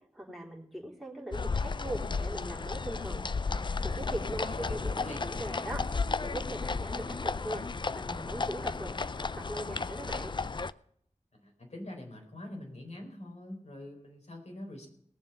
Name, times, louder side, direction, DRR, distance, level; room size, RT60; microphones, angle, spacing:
voice 1, 0.1-3.3 3.8-5.8 6.2-7.6 7.9-8.9 9.2-10.3, right 1 dB, ahead, -2 dB, 3.4 m, -40 dB
sound 1, 1.3-10.7, left 4 dB, 40° left, 0.4 m, -34 dB
voice 2, 4.4-5.8 11.3-14.9, left 1 dB, 65° left, 1 dB, 4.3 m, -44 dB
19.5 x 7.4 x 5.6 m, 0.69 s
wide cardioid pair, 80°, 12 cm